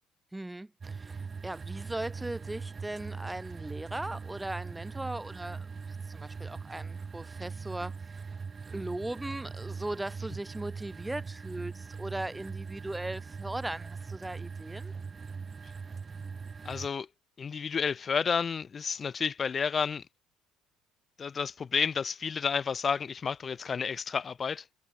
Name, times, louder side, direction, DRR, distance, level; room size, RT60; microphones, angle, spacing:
voice 1, 0.3-5.7 6.1-7.9 8.7-14.9, right 1 dB, 10° right, 4.5 m, -38 dB
sound 1, 0.8-16.9, right 5 dB, 30° right, 6.2 m, -41 dB
voice 2, 16.6-17.1 17.4-20.0 21.2-24.6, left 6 dB, 35° left, 1.3 m, -31 dB
hypercardioid pair, 55°, 0 cm